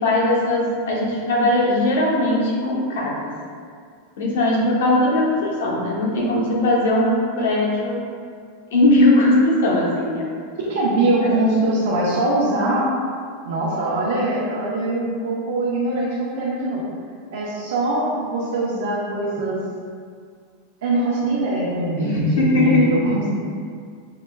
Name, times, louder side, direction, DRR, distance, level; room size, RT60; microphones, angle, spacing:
voice 1, 0.0-3.3 4.2-8.0 8.7-10.5 22.0-22.8, left 1 dB, 80° left, -4 dB, 1.0 m, -19 dB
voice 2, 10.6-12.9 13.4-16.8 17.3-19.6 20.8-22.2 22.6-23.3, right 2 dB, 80° right, -7 dB, 0.7 m, -22 dB
5.6 x 2.2 x 2.2 m, 2.1 s
supercardioid pair, 165°, 0 cm